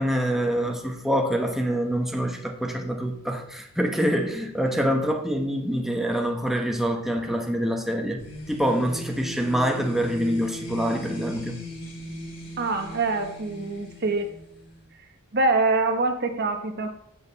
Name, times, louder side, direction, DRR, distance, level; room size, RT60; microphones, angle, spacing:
voice 1, 0.0-8.2 8.5-11.6, equal, ahead, 2 dB, 1.2 m, -25 dB
sound 1, 8.2-14.8, left 1 dB, 65° left, 4.0 m, -38 dB
voice 2, 12.6-14.3 15.3-16.9, right 3 dB, 50° right, 5 dB, 1.2 m, -24 dB
15.0 x 5.4 x 4.1 m, 0.75 s
head